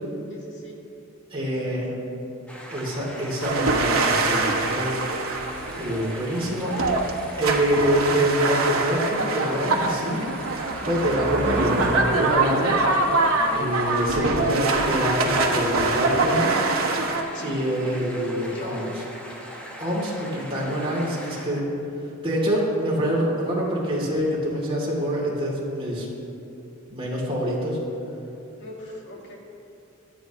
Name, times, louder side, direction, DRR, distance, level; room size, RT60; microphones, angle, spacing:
voice 1, 0.3-0.8 1.4-1.8 13.4-13.7 17.3-17.6 18.5-18.9 28.6-29.4, left 1 dB, 60° left, -2 dB, 2.0 m, -40 dB
voice 2, 1.3-1.9 2.7-5.0 5.8-6.8 7.4-12.7 13.5-16.5 17.4-18.9 19.8-21.6 22.2-26.1 26.9-27.8, equal, 25° right, -5 dB, 3.0 m, -26 dB
sound 1, 2.5-21.4, equal, 5° left, 1.5 m, -40 dB
sound 2, 3.4-17.2, right 3 dB, 75° right, 1.2 m, -24 dB
sound 3, 9.0-15.0, right 2 dB, 55° right, 1.3 m, -32 dB
23.5 x 8.7 x 3.1 m, 2.7 s
head